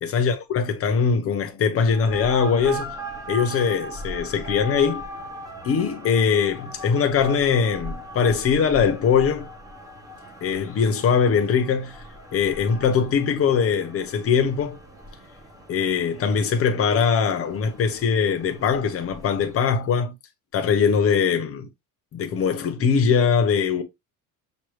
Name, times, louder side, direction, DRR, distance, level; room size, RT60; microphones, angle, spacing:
voice 1, 0.0-2.9 3.3-5.0 5.6-9.5 10.4-12.0 12.3-14.8 15.7-20.1 20.5-21.7 22.1-23.8, left 6 dB, 40° left, 0.9 m, -21 dB
sound 1, 1.9-19.8, right 1 dB, 10° right, 0.9 m, -39 dB
6.3 x 2.6 x 3.1 m
cardioid pair, 165°, 37 cm